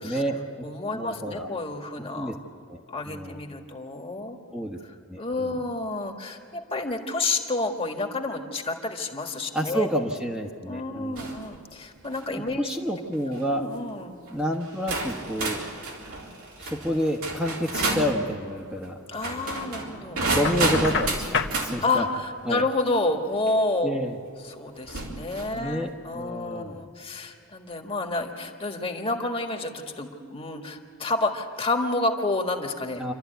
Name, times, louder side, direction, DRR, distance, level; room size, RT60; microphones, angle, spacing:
voice 1, 0.0-0.6 0.9-1.5 2.1-2.3 2.7-2.8 3.0-3.4 4.5-4.8 5.1-5.5 9.5-11.3 12.6-13.6 14.3-15.6 16.6-19.0 20.2-22.0 22.4-22.6 23.8-24.2 25.5-26.9 33.0-33.1, equal, 5° right, 0 dB, 1.3 m, -29 dB
voice 2, 0.6-2.3 2.9-4.4 5.2-9.9 10.7-12.7 13.2-14.2 19.1-20.2 21.8-24.0 24.4-33.1, left 2 dB, 25° left, 4 dB, 1.7 m, -29 dB
sound 1, 11.2-11.5 12.0-12.3 13.1-13.4 14.3-14.4 14.9-18.1 19.1-21.7 23.5-23.6 24.8-25.6, right 2 dB, 85° right, 3.9 m, -30 dB
Knock, 20.4-21.6, left 4 dB, 55° left, 1.2 m, -28 dB
28.0 x 13.0 x 9.3 m, 2.5 s
head